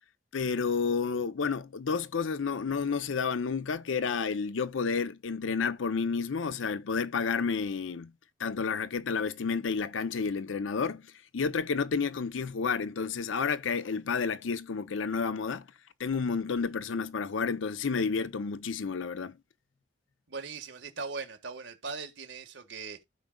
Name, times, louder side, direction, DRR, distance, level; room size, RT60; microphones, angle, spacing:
voice 1, 0.3-8.1 8.4-11.0 11.3-15.6 16.0-19.4, left 5 dB, 90° left, 0.6 m, -30 dB
voice 2, 20.3-23.0, right 4 dB, 70° right, 1.5 m, -40 dB
15.0 x 5.1 x 2.2 m
head